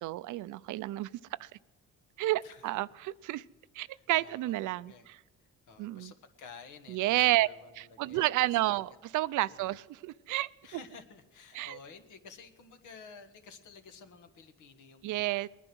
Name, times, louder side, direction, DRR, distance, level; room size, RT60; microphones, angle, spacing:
voice 1, 0.0-1.1 1.4-1.5 2.2-3.4 3.7-5.2 5.8-6.1 6.9-7.5 7.8-10.5 11.5-11.8 15.0-15.5, right 16 dB, 80° right, 0.5 m, -30 dB
voice 2, 3.8-5.1 5.4-9.0 9.5-9.7 10.6-15.5, left 5 dB, 80° left, 1.5 m, -53 dB
20.0 x 10.0 x 6.2 m
cardioid pair, 90°, 30 cm